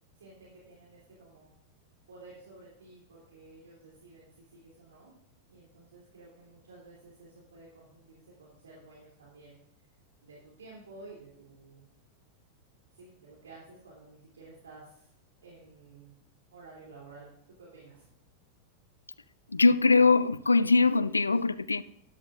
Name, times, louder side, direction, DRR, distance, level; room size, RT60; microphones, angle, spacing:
voice 1, 0.2-1.5 2.1-5.1 5.5-9.5 10.2-11.8 12.9-15.1 15.4-16.2 16.5-17.3 17.6-18.1, right 3 dB, 80° right, 3.0 m, -52 dB
voice 2, 19.5-21.8, left 3 dB, 90° left, 0.3 m, -22 dB
13.0 x 11.0 x 2.5 m
figure-of-eight pair, 90°, 0 cm